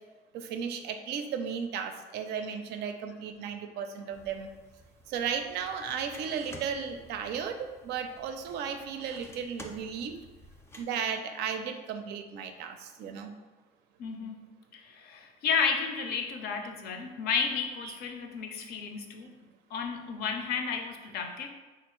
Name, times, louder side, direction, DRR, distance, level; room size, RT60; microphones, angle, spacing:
voice 1, 0.3-4.5 5.1-10.2 10.8-13.3 16.1-16.2 17.8-18.0, right 7 dB, 80° right, 6 dB, 0.4 m, -35 dB
sound 1, 4.1-10.8, left 1 dB, 15° left, 0.4 m, -52 dB
voice 2, 14.0-19.3 19.7-21.5, left 6 dB, 65° left, 5 dB, 0.5 m, -32 dB
3.4 x 2.4 x 3.0 m, 1.2 s
cardioid pair, 110°, 17 cm